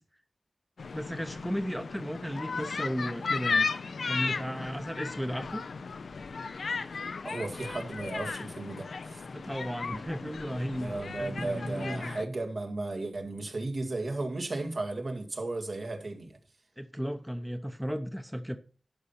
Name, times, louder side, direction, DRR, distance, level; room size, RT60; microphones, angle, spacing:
sound 1, 0.8-12.2, left 4 dB, 85° left, 0.5 m, -35 dB
voice 1, 0.9-3.7 4.0-5.6 9.3-12.2 16.8-18.6, equal, 5° right, 0.8 m, -35 dB
voice 2, 7.2-9.2 10.8-16.4, right 2 dB, 65° right, 1.9 m, -35 dB
11.5 x 5.5 x 5.7 m
cardioid pair, 50°, 0 cm